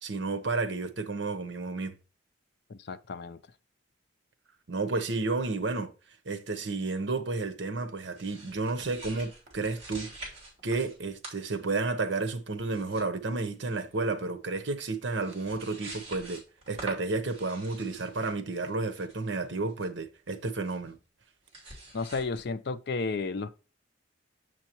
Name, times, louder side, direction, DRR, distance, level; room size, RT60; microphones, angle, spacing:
voice 1, 0.0-2.0 4.7-5.9 6.3-10.1 10.6-16.4 16.7-21.0, right 3 dB, 70° right, 0.9 m, -31 dB
voice 2, 2.7-3.4 21.9-23.5, left 4 dB, 60° left, 0.5 m, -32 dB
sound 1, 8.1-11.0 11.2-11.9 12.6-13.0 13.3-13.8 14.8-14.9 15.1-19.9 20.6-20.9 21.4-22.4, right 2 dB, 30° right, 3.1 m, -46 dB
7.2 x 6.4 x 2.9 m
head